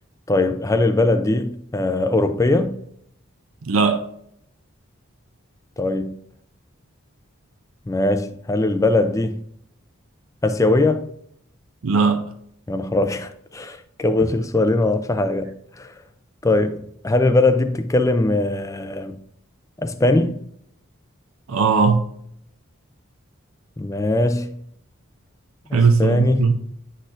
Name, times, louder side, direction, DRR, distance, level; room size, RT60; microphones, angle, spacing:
voice 1, 0.3-2.8 5.8-6.2 7.9-9.4 10.4-11.1 12.7-15.9 16.4-19.2 19.8-20.4 23.8-24.6 25.7-26.5, left 2 dB, 15° left, 0.4 m, -21 dB
voice 2, 3.6-4.0 11.8-12.3 21.5-22.0 25.7-26.5, right 5 dB, 75° right, 0.5 m, -18 dB
10.0 x 4.2 x 2.5 m
head